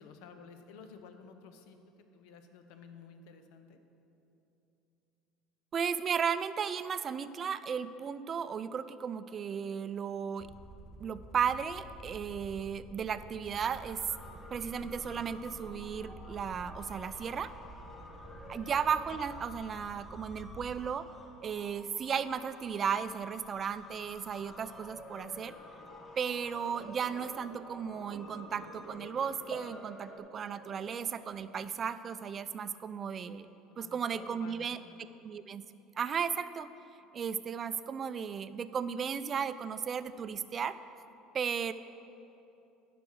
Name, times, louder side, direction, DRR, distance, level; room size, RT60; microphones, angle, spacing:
voice 1, 0.0-3.8 18.3-18.6 33.7-35.0 41.6-41.7, left 5 dB, 70° left, 7 dB, 0.8 m, -53 dB
voice 2, 5.7-10.5 11.0-14.0 14.5-17.5 18.5-21.1 21.4-25.5 26.2-33.5 33.8-34.8 35.2-35.6 36.0-36.7 37.1-40.8 41.3-41.7, right 7 dB, 40° right, 13 dB, 0.4 m, -35 dB
sound 1, 10.3-20.9, right 2 dB, 15° right, 1.9 m, -50 dB
sound 2, 13.7-30.2, left 2 dB, 25° left, 1.2 m, -51 dB
sound 3, 26.5-31.6, right 5 dB, 70° right, 0.9 m, -50 dB
9.5 x 5.9 x 6.2 m, 2.9 s
supercardioid pair, 85°, 0 cm